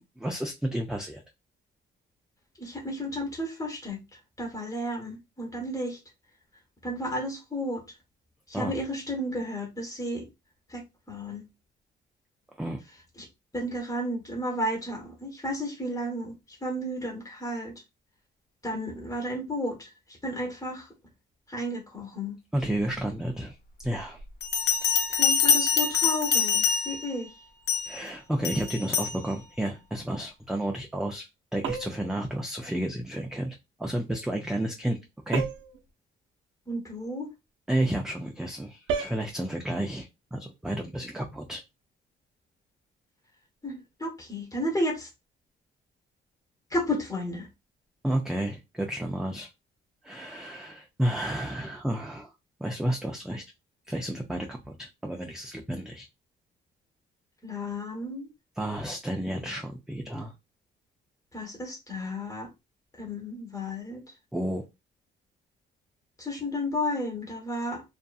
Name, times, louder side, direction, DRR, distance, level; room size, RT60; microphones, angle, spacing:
voice 1, 0.2-1.2 8.5-8.8 12.6-12.8 22.5-23.6 23.8-24.2 24.8-24.9 27.8-31.3 31.5-35.0 35.3-35.5 37.7-41.6 48.0-49.5 50.0-52.3 52.6-53.4 53.9-56.1 58.6-60.3 64.3-64.6, right 1 dB, 5° right, 0.4 m, -31 dB
voice 2, 2.6-4.0 4.4-6.0 6.8-7.8 8.5-10.3 10.7-10.8 11.1-11.4 13.2-13.3 13.5-17.7 18.6-19.9 20.2-20.9 21.5-22.4 25.1-27.3 36.7-37.3 43.6-45.1 46.7-47.5 57.4-58.3 61.3-62.5 63.0-64.0 66.2-67.8, left 1 dB, 15° left, 1.0 m, -32 dB
Bell, 24.4-27.1 27.7-28.0 28.4-29.2, left 6 dB, 55° left, 0.7 m, -25 dB
sound 1, 31.6-32.1 35.3-35.8 38.9-39.2, right 6 dB, 80° right, 0.5 m, -31 dB
2.6 x 2.5 x 2.3 m
cardioid pair, 90°, 20 cm